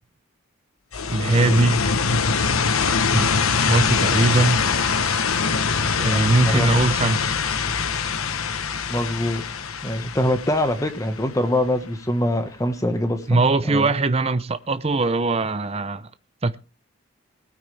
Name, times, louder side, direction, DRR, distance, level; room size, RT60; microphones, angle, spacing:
sound 1, 0.9-11.6, left 5 dB, 80° left, 1.1 m, -23 dB
voice 1, 1.1-1.9 3.1-4.6 6.0-7.3 13.3-16.1 16.4-16.6, right 3 dB, 30° right, 0.6 m, -21 dB
voice 2, 6.1-6.7 8.9-9.4 9.8-13.9, left 1 dB, 15° left, 1.4 m, -24 dB
20.0 x 9.6 x 3.4 m
head